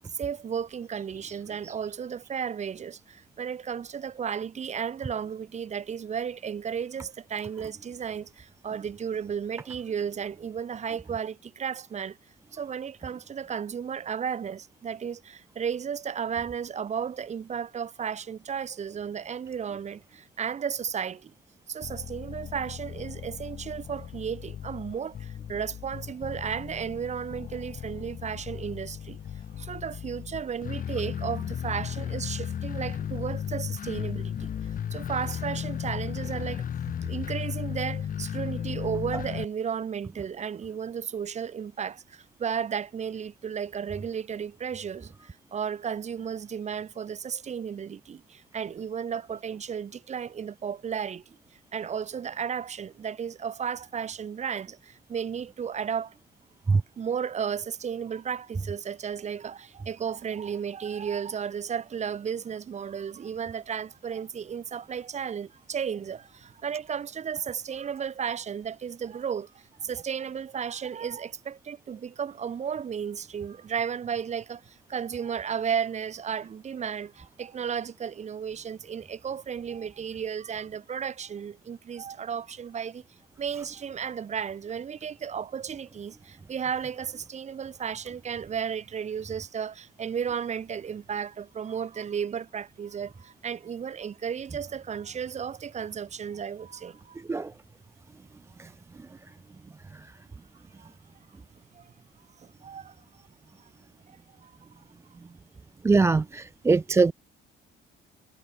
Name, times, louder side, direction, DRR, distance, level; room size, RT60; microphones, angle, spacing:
voice 1, 0.1-12.2 12.5-21.3 21.7-29.2 29.6-34.5 34.9-36.7 37.1-51.4 51.7-56.1 57.0-83.0 83.4-97.2 100.8-100.9 101.7-101.9 102.4-103.0 103.6-103.7 104.1-104.6, right 7 dB, 35° right, 2.5 m, -34 dB
sound 1, 21.8-39.5, left 9 dB, 40° left, 2.6 m, -35 dB
voice 2, 105.8-107.1, right 4 dB, 15° right, 0.4 m, -21 dB
cardioid pair, 170°, 21 cm